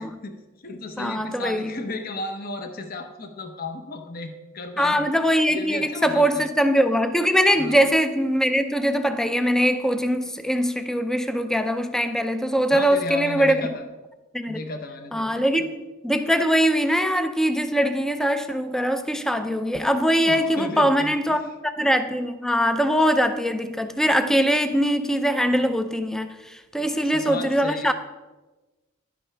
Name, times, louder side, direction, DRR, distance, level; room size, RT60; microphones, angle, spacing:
voice 1, 0.0-5.1 5.5-6.4 7.6-7.7 12.7-13.8 14.5-15.7 20.2-21.4 26.8-27.9, left 2 dB, 45° left, 0.8 m, -35 dB
voice 2, 1.0-1.7 4.8-13.6 14.3-14.6 15.1-15.6 16.0-27.9, equal, ahead, 0.4 m, -22 dB
11.0 x 10.0 x 3.3 m
head